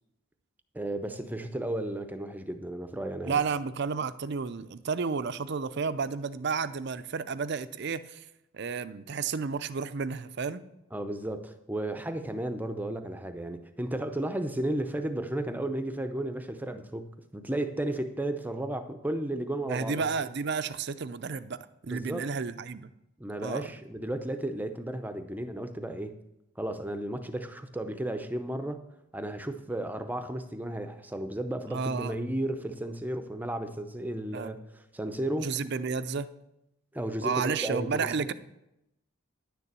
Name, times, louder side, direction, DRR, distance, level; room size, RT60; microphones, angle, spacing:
voice 1, 0.7-3.4 10.9-20.0 21.9-22.3 23.2-26.2 26.6-28.8 29.1-34.6 34.9-35.5 36.9-38.1, right 1 dB, 10° right, 8 dB, 0.6 m, -33 dB
voice 2, 3.3-8.2 8.5-10.6 19.7-21.6 21.8-22.9 23.4-23.7 31.7-32.2 34.3-34.5 35.4-36.3 37.2-38.3, right 5 dB, 50° right, 13 dB, 0.5 m, -31 dB
10.5 x 6.8 x 7.4 m, 0.87 s
head